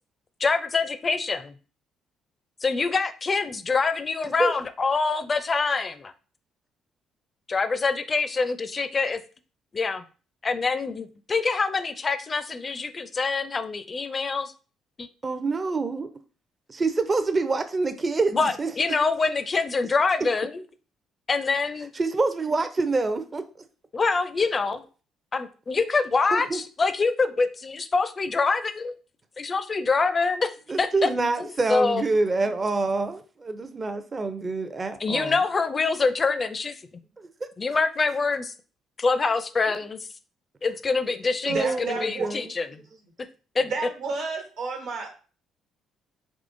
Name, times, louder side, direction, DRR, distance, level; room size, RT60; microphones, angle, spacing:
voice 1, 0.4-1.5 2.6-6.1 7.5-9.2 9.7-10.0 10.4-14.5 15.0-15.1 18.3-20.6 21.3-21.9 23.9-24.8 25.3-28.9 29.4-31.1 31.4-32.0 35.0-36.8 37.6-38.5 39.0-40.1 40.6-42.8 43.6-43.7, left 4 dB, 35° left, 11 dB, 0.4 m, -25 dB
voice 2, 15.2-16.1 16.7-18.7 22.0-23.4 26.3-26.6 30.7-35.3 37.2-37.5 41.5-42.5, right 3 dB, 35° right, 9 dB, 0.4 m, -26 dB
voice 3, 41.5-42.4 43.6-45.1, right 4 dB, 80° right, 2 dB, 1.1 m, -31 dB
3.6 x 3.0 x 2.5 m, 0.37 s
supercardioid pair, 70°, 0 cm